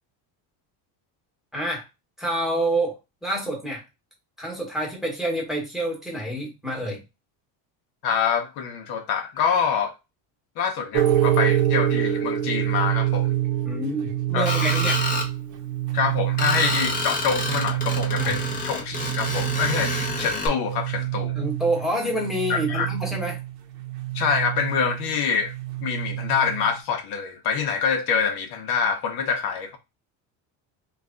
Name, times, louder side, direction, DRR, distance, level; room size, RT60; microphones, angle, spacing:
voice 1, 1.5-1.8 2.2-2.9 3.2-3.8 4.4-7.0 13.6-15.0 18.2-18.3 21.3-23.4, right 1 dB, ahead, 1.1 m, -27 dB
voice 2, 8.0-9.9 10.6-13.3 14.3-14.8 15.9-21.4 22.5-22.9 24.1-25.5 25.8-29.8, left 6 dB, 60° left, 0.8 m, -26 dB
sound 1, 10.9-26.8, right 13 dB, 55° right, 0.8 m, -26 dB
Screech, 14.5-15.3 16.4-20.5, left 2 dB, 20° left, 0.7 m, -28 dB
3.2 x 2.3 x 3.7 m
cardioid pair, 165°, 44 cm